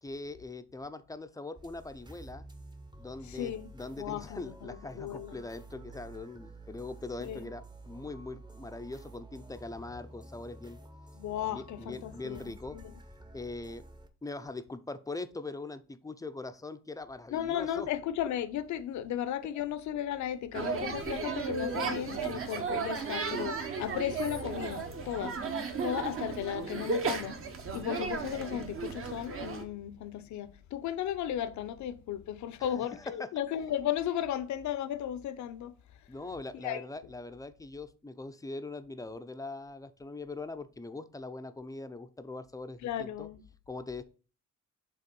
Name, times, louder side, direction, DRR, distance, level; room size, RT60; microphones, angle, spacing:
voice 1, 0.0-2.5 3.0-10.8 11.4-12.8 13.3-13.8 14.2-17.9 32.6-33.3 36.1-43.3 43.7-44.0, left 3 dB, 10° left, 0.5 m, -42 dB
sound 1, 1.5-14.1, right 2 dB, 15° right, 0.8 m, -51 dB
voice 2, 3.2-3.7 4.0-5.4 7.2-7.5 11.1-12.9 17.3-25.3 25.8-27.4 27.7-35.7 36.6-36.8 42.8-43.4, left 10 dB, 70° left, 0.7 m, -35 dB
sound 2, 20.5-29.6, right 4 dB, 45° right, 1.0 m, -35 dB
5.4 x 3.5 x 5.2 m
cardioid pair, 90°, 30 cm